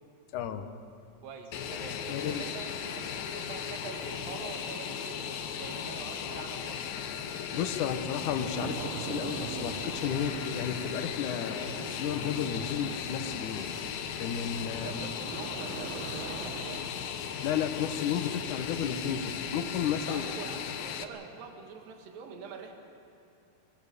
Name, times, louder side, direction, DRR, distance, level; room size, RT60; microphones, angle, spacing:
voice 1, 0.3-0.7 2.1-2.5 7.5-13.7 14.2-15.1 17.4-20.3, left 8 dB, 65° left, 8 dB, 2.3 m, -33 dB
voice 2, 1.2-6.8 14.8-16.9 20.1-22.7, right 5 dB, 65° right, 3 dB, 3.5 m, -44 dB
Fixed-wing aircraft airplane, 1.5-21.0, left 8 dB, 85° left, 1.5 m, -37 dB
sound 1, 8.5-17.1, right 9 dB, 85° right, 3.0 m, -44 dB
25.5 x 21.5 x 6.8 m, 2.8 s
omnidirectional pair, 4.5 m